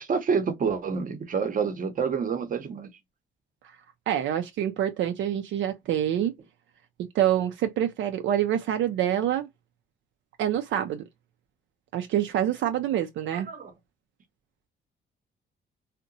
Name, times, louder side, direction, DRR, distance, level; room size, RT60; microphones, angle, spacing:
voice 1, 0.0-2.9 13.3-13.7, right 6 dB, 45° right, 0.7 m, -28 dB
voice 2, 4.1-6.3 7.0-9.5 10.4-11.0 11.9-13.5, right 11 dB, 70° right, 0.4 m, -26 dB
2.7 x 2.1 x 2.5 m
cardioid pair, 90°, 20 cm